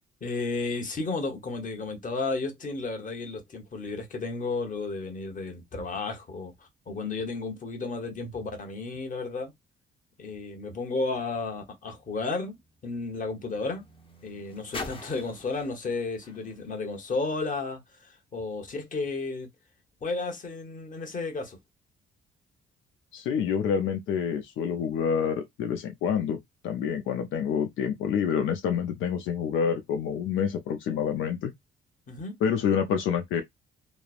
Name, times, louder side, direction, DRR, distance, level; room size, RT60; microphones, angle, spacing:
voice 1, 0.2-9.5 10.2-13.8 14.2-19.5 20.0-21.6 32.1-32.4, left 3 dB, 40° left, 1.1 m, -33 dB
sound 1, 11.8-17.7 18.5-18.6, left 3 dB, 25° left, 0.8 m, -46 dB
voice 2, 23.1-26.4 26.6-31.5 32.4-33.4, left 7 dB, 80° left, 0.5 m, -27 dB
3.1 x 2.0 x 2.4 m
cardioid pair, 90°, 20 cm